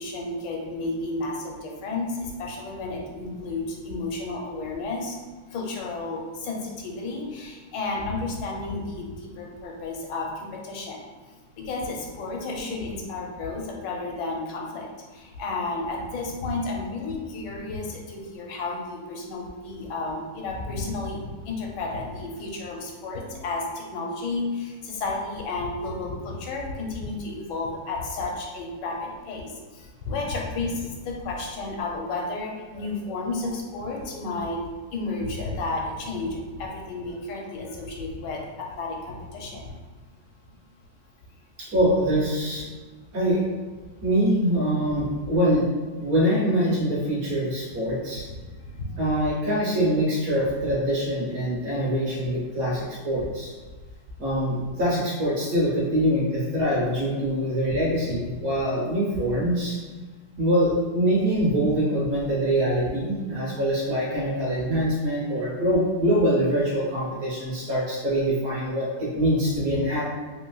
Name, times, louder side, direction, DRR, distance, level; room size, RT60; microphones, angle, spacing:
voice 1, 0.0-5.2 5.5-11.0 11.6-14.9 15.1-34.6 34.9-39.7 44.0-44.1 47.9-48.0 48.3-49.0, left 3 dB, 85° left, -1 dB, 1.3 m, -32 dB
voice 2, 41.6-42.6 43.1-43.4 44.0-45.7 46.0-48.3 49.0-53.5 54.2-59.8 60.4-70.1, equal, 60° right, -5 dB, 1.2 m, -24 dB
3.2 x 3.0 x 2.3 m, 1.4 s
omnidirectional pair, 1.9 m